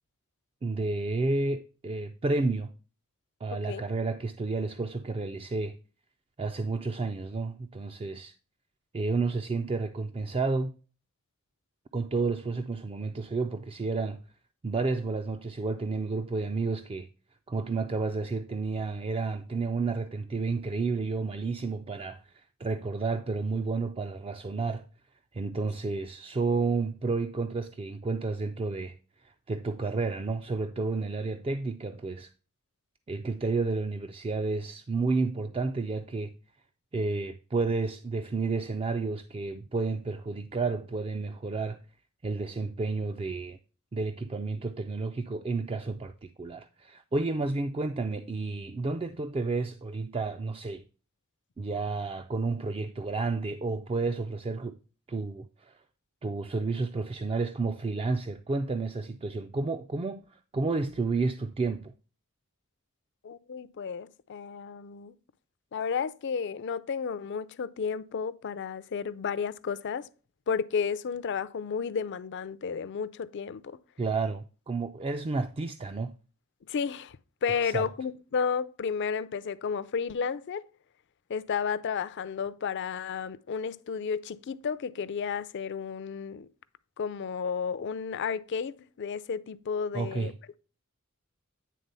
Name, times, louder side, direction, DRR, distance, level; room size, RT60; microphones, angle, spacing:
voice 1, 0.6-2.7 3.4-5.8 6.4-8.3 8.9-10.7 11.9-14.2 14.6-17.1 17.5-24.9 25.3-29.0 29.2-32.3 33.1-36.3 36.9-41.8 42.2-43.6 43.9-50.8 51.6-54.8 55.1-55.7 56.2-60.2 60.5-61.9 74.0-76.1 77.6-77.8 89.9-90.3, right 3 dB, 25° right, 0.3 m, -31 dB
voice 2, 3.5-3.8 63.2-65.2 65.7-70.1 70.5-73.8 76.7-77.2 77.4-80.7 81.3-86.5 87.0-90.3, left 6 dB, 55° left, 0.4 m, -32 dB
9.3 x 3.7 x 5.4 m
head